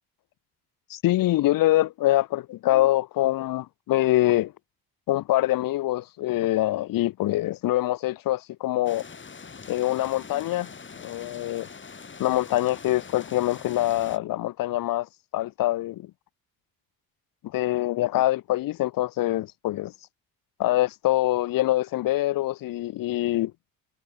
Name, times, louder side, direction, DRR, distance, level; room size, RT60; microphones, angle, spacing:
voice 1, 0.9-4.5 5.1-9.0 9.7-10.7 11.0-11.7 12.2-16.1 17.4-19.9 20.6-23.5, left 15 dB, 60° left, 0.7 m, -24 dB
sound 1, 8.9-14.2, left 5 dB, 30° left, 1.7 m, -43 dB
supercardioid pair, 55°, 39 cm